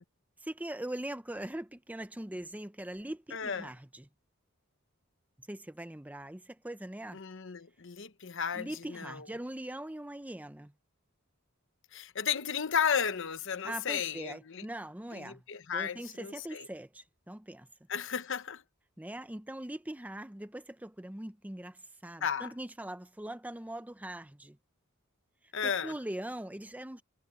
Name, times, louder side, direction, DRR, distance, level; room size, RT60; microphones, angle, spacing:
voice 1, 0.4-4.1 5.4-7.2 8.6-10.7 13.6-15.4 15.7-17.7 19.0-24.6 25.6-27.0, right 1 dB, 5° right, 0.6 m, -41 dB
voice 2, 3.3-3.7 7.1-9.3 11.9-14.6 15.1-16.6 17.9-18.6 22.2-22.5 25.5-25.9, left 7 dB, 60° left, 1.0 m, -34 dB
head